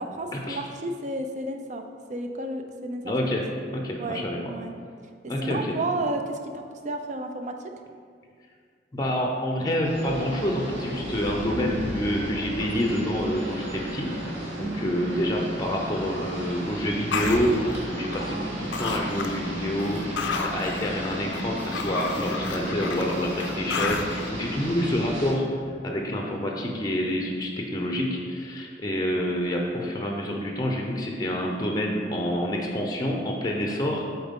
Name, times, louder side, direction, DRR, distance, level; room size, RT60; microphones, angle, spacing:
voice 1, 0.0-1.8 2.1-3.1 4.0-4.7 5.4-7.5 14.6-15.2 18.2-18.7 19.3-19.5, right 2 dB, 40° right, 5 dB, 0.4 m, -32 dB
voice 2, 3.0-3.4 3.7-4.4 5.3-5.8 8.9-14.2 14.6-25.5 25.8-34.0, equal, 20° left, 0 dB, 0.6 m, -27 dB
sound 1, 9.8-25.3, equal, 85° right, 1.6 m, -34 dB
sound 2, 17.1-18.5 18.7-19.5 19.8-24.3, left 4 dB, 75° left, 0.5 m, -32 dB
7.6 x 4.3 x 3.6 m, 2.1 s
head